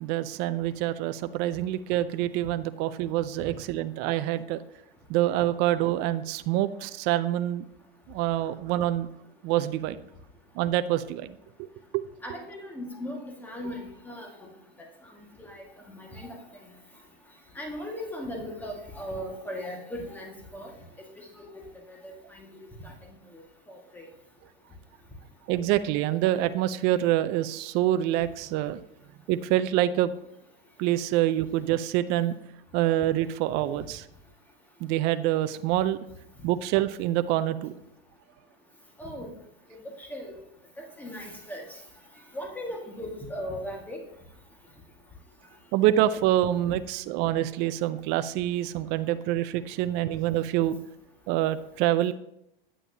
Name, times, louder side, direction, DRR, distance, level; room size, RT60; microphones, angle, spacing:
voice 1, 0.0-4.6 5.1-7.6 8.1-9.1 9.4-10.0 10.6-11.3 11.9-12.0 25.5-28.8 29.3-30.1 30.8-32.4 32.7-34.0 34.8-36.0 36.4-37.7 45.7-50.8 51.3-52.1, right 13 dB, 35° right, 12 dB, 0.4 m, -26 dB
voice 2, 12.2-14.5 15.4-15.6 15.9-16.4 17.6-20.7 21.4-21.6 22.0-22.6 23.7-24.0 39.0-39.3 40.0-40.4 40.8-41.6 42.3-44.0, equal, 5° left, 0 dB, 1.7 m, -38 dB
8.9 x 8.5 x 2.8 m, 0.81 s
hypercardioid pair, 120°, 29 cm